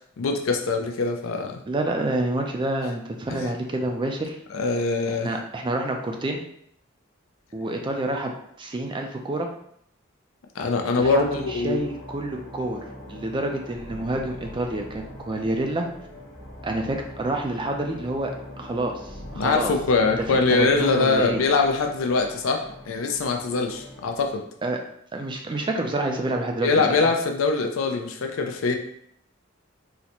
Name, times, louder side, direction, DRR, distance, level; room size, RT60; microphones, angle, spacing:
voice 1, 0.2-1.6 3.3-3.5 4.5-5.3 10.6-11.8 19.4-24.4 26.6-28.7, left 4 dB, 80° left, 4 dB, 0.5 m, -23 dB
voice 2, 1.7-4.4 5.1-6.4 7.5-8.3 8.6-9.5 11.0-15.9 16.6-19.7 20.0-21.4 24.6-24.8 25.1-26.9, right 2 dB, 25° right, 3 dB, 0.4 m, -28 dB
sound 1, 11.0-24.3, left 1 dB, 60° left, 1.2 m, -42 dB
3.8 x 2.1 x 2.9 m, 0.69 s
head